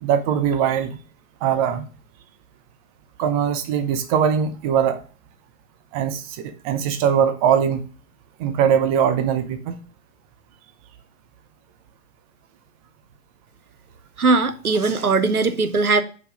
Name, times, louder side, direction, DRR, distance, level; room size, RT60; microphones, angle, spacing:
voice 1, 0.0-1.0 1.4-1.8 3.2-5.0 5.9-7.8 8.4-9.8, right 8 dB, 25° right, 0.6 m, -21 dB
voice 2, 14.2-16.0, right 3 dB, 85° right, 0.9 m, -19 dB
5.4 x 4.6 x 5.0 m
figure-of-eight pair, 110°, 43 cm